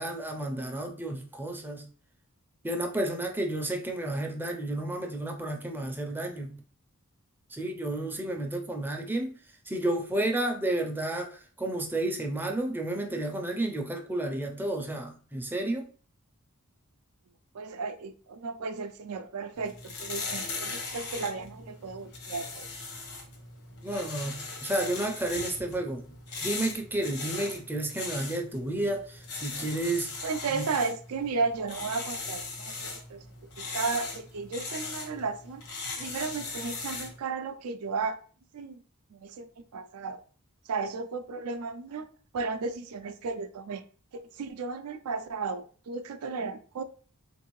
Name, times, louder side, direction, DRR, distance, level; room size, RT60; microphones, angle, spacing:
voice 1, 0.0-1.8 2.6-6.6 7.5-9.4 9.7-15.9 23.8-26.0 26.4-30.1 30.5-30.6, right 1 dB, 10° right, 0.4 m, -31 dB
voice 2, 17.5-22.7 30.2-33.2 33.7-35.6 36.0-38.2 38.5-38.8 39.1-40.2 40.7-42.1 42.3-43.8 44.1-46.8, right 4 dB, 75° right, 0.4 m, -34 dB
sound 1, 19.6-37.2, left 3 dB, 75° left, 1.1 m, -39 dB
3.5 x 2.6 x 3.0 m
head